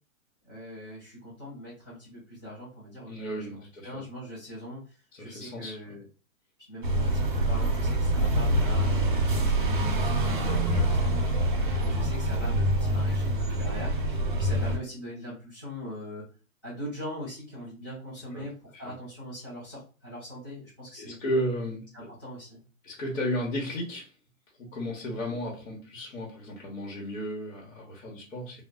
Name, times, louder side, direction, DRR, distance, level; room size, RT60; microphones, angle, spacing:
voice 1, 0.4-6.0 6.7-16.2 16.6-21.2 21.9-22.6, equal, 15° left, 0.6 m, -41 dB
voice 2, 3.1-4.0 5.2-6.0 6.8-7.0 10.6-11.4 18.3-18.4 18.8-18.9 21.0-22.1 22.8-24.1 24.6-28.6, equal, 70° left, 1.1 m, -34 dB
sound 1, 6.8-14.8, right 1 dB, 40° right, 0.5 m, -25 dB
2.2 x 2.2 x 3.6 m
hypercardioid pair, 175°, 41 cm